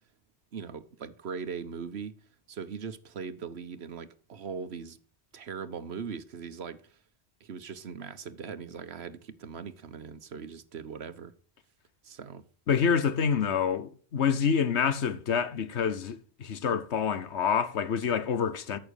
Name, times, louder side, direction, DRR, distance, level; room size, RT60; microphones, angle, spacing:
voice 1, 0.5-2.1 2.5-5.0 5.3-7.0 7.4-11.3 12.0-12.4, right 6 dB, 70° right, 1.3 m, -40 dB
voice 2, 12.7-18.8, left 7 dB, 90° left, 1.3 m, -27 dB
14.0 x 6.3 x 6.4 m
omnidirectional pair, 1.1 m